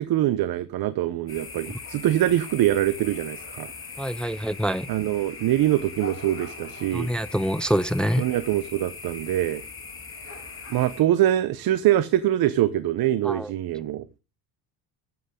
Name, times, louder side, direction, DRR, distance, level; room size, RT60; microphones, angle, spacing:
voice 1, 0.0-3.7 4.9-7.3 8.2-9.6 10.7-14.1, right 13 dB, 55° right, 0.9 m, -24 dB
sound 1, 1.3-11.0, left 4 dB, 30° left, 2.8 m, -40 dB
voice 2, 4.0-4.9 6.9-8.3 13.2-13.5, equal, ahead, 0.4 m, -25 dB
13.0 x 7.7 x 3.7 m
supercardioid pair, 90°, 42 cm